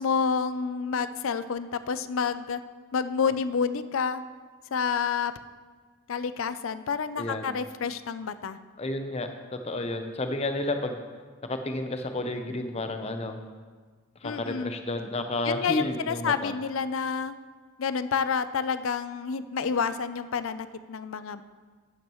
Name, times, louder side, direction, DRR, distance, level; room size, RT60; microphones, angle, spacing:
voice 1, 0.0-2.6 2.9-4.2 4.7-5.3 6.1-8.6 14.2-14.7 15.4-17.3 17.8-21.4, left 6 dB, 70° left, 13 dB, 0.5 m, -29 dB
voice 2, 7.2-7.5 8.8-11.0 11.4-13.4 14.2-16.5, left 2 dB, 30° left, 6 dB, 0.6 m, -31 dB
11.0 x 10.5 x 3.1 m, 1.5 s
head